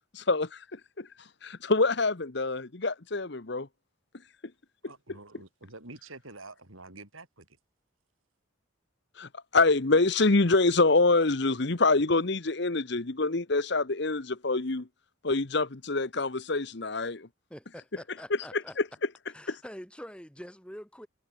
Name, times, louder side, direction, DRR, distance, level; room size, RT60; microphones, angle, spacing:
voice 1, 0.1-1.1 1.4-3.7 9.2-14.9 15.2-17.3 18.5-18.6 19.5-19.6, left 3 dB, 55° left, 1.1 m, -26 dB
voice 2, 4.9-7.5, right 2 dB, 80° right, 7.3 m, -47 dB
voice 3, 17.5-18.8 19.3-21.1, equal, 5° left, 4.4 m, -45 dB
head